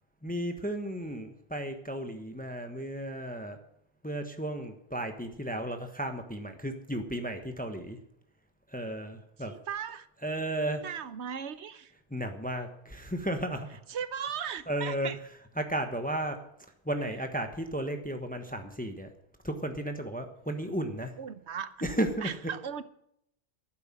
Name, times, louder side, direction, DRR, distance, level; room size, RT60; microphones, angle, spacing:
voice 1, 0.2-3.6 4.0-8.0 8.7-9.5 10.2-10.9 12.1-13.7 14.7-15.1 15.6-16.4 16.8-19.1 19.4-21.1 21.8-22.3, right 1 dB, 10° left, 6 dB, 1.2 m, -34 dB
voice 2, 9.4-10.1 10.8-11.9 13.9-15.2 21.2-21.9 22.2-22.8, right 7 dB, 80° right, 14 dB, 1.1 m, -37 dB
11.5 x 9.5 x 7.5 m, 0.74 s
omnidirectional pair, 1.1 m